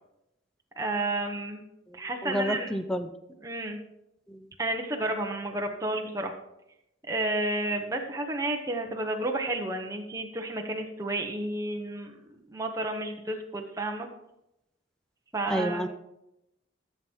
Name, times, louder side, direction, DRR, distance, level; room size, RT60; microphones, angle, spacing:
voice 1, 0.8-1.6 1.9-2.8 3.4-3.8 4.6-6.3 7.1-14.1 15.3-15.8, right 2 dB, 15° right, 2 dB, 1.0 m, -31 dB
voice 2, 1.9-3.1 4.3-4.4 15.5-15.9, equal, 5° left, 9 dB, 0.5 m, -30 dB
14.0 x 7.2 x 4.5 m, 0.87 s
head